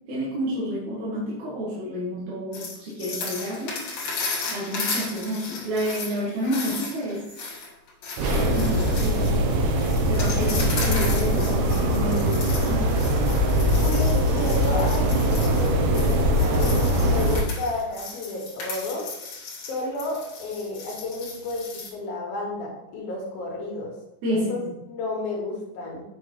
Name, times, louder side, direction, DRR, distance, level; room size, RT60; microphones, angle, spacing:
voice 1, 0.1-3.8 4.5-7.2 8.2-12.8 24.2-24.7, equal, 60° right, -7 dB, 2.7 m, -30 dB
sound 1, 2.5-21.9, left 4 dB, 55° left, 2.7 m, -35 dB
sound 2, 8.2-17.4, equal, 90° right, 2.8 m, -22 dB
voice 2, 10.2-10.6 13.8-19.1 19.7-23.9 24.3-24.6 24.9-26.0, left 2 dB, 75° left, -1 dB, 3.5 m, -32 dB
8.7 x 6.3 x 3.1 m, 0.89 s
omnidirectional pair, 4.2 m